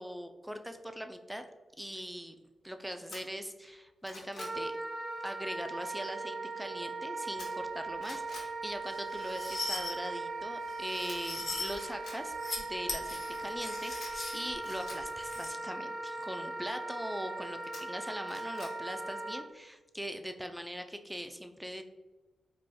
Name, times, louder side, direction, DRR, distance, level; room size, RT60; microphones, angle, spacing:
voice 1, 0.0-1.4 1.8-2.3 2.6-4.7 5.2-21.8, equal, 5° right, 7 dB, 0.4 m, -41 dB
sound 1, 3.1-3.2 3.7-4.6 7.4-7.7 8.0-8.5 11.1-11.2 11.7-12.2 14.0-15.0 17.7-18.7 19.1-19.2, left 2 dB, 80° left, 1.2 m, -48 dB
Wind instrument woodwind instrument, 4.4-19.4, right 3 dB, 30° right, 0.9 m, -39 dB
sound 2, 8.9-9.9 10.7-11.8 12.2-12.6 12.9-15.5, left 2 dB, 35° left, 1.0 m, -40 dB
4.7 x 2.5 x 2.2 m, 1.2 s
cardioid pair, 65°, 0 cm